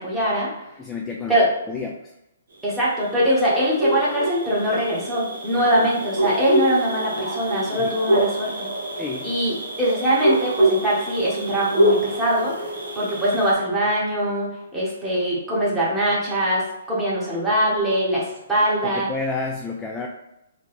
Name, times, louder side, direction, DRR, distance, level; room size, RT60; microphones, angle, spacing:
voice 1, 0.0-0.7 1.3-1.5 2.6-8.7 9.2-12.5 12.9-19.1, equal, 5° right, -8 dB, 1.3 m, -22 dB
voice 2, 0.8-1.4 1.7-2.0 5.6-5.9 7.7-7.9 9.0-9.3 18.9-20.1, left 4 dB, 10° left, 1 dB, 0.3 m, -30 dB
sound 1, 3.1-13.5, right 1 dB, 75° right, 1.1 m, -25 dB
3.8 x 2.3 x 4.0 m, 0.88 s
hypercardioid pair, 145°, 0 cm